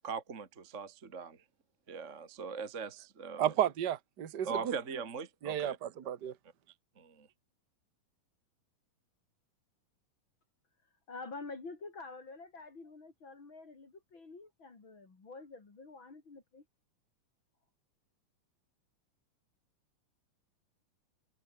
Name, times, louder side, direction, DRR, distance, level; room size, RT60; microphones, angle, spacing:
voice 1, 0.0-1.4 1.9-3.5 4.4-5.8 7.0-7.3, right 5 dB, 25° right, 1.9 m, -40 dB
voice 2, 3.4-4.7 5.4-6.3, right 10 dB, 40° right, 1.6 m, -32 dB
voice 3, 11.1-16.6, left 3 dB, 35° left, 4.1 m, -48 dB
omnidirectional pair, 4.1 m